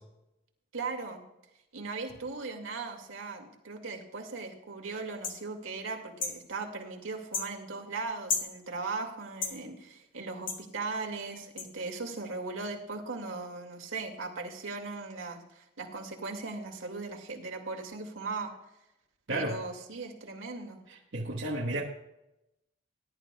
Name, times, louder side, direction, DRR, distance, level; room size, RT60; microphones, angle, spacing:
voice 1, 0.7-1.2 1.7-18.5 19.3-20.8, right 3 dB, 85° right, 2 dB, 2.1 m, -38 dB
sound 1, 5.2-5.4 6.2-6.4 7.3-7.5 8.3-8.5 9.4-9.6 10.5-10.6 11.6-11.7, left 4 dB, 45° left, 1.5 m, -32 dB
voice 2, 19.3-19.6 20.9-21.8, right 1 dB, 70° right, -2 dB, 1.4 m, -32 dB
20.0 x 11.0 x 2.3 m, 0.90 s
head